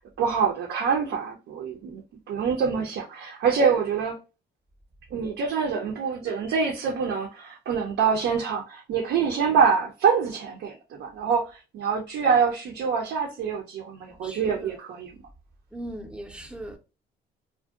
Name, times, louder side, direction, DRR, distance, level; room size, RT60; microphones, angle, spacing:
voice 1, 0.0-2.0 2.3-4.2 5.1-15.1, right 6 dB, 75° right, 0.5 m, -25 dB
voice 2, 14.1-14.7 15.7-16.8, right 1 dB, 5° right, 0.5 m, -39 dB
2.5 x 2.1 x 2.3 m
cardioid pair, 90°, 20 cm